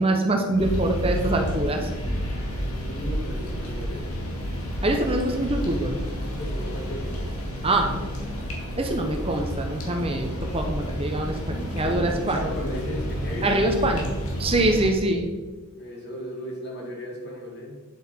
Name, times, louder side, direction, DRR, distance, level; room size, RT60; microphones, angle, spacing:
voice 1, 0.0-1.9 4.8-6.0 7.6-8.0 8.8-12.4 13.4-15.3, right 2 dB, 25° right, 3 dB, 0.9 m, -24 dB
sound 1, 0.6-14.9, equal, 80° left, 2.3 m, -30 dB
voice 2, 2.9-4.1 6.4-7.3 11.8-14.2 15.8-17.8, equal, 50° left, -1 dB, 2.2 m, -35 dB
9.5 x 7.7 x 4.4 m, 1.3 s
head